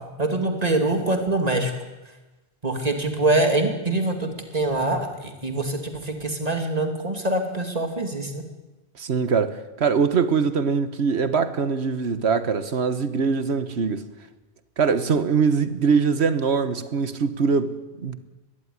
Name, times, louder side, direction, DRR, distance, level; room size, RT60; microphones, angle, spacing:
voice 1, 0.2-1.7 2.6-5.1 5.4-8.4, right 2 dB, 35° right, 2.7 m, -24 dB
voice 2, 9.0-14.1 14.8-18.2, right 5 dB, 80° right, 1.5 m, -22 dB
21.5 x 14.5 x 9.8 m
omnidirectional pair, 1.1 m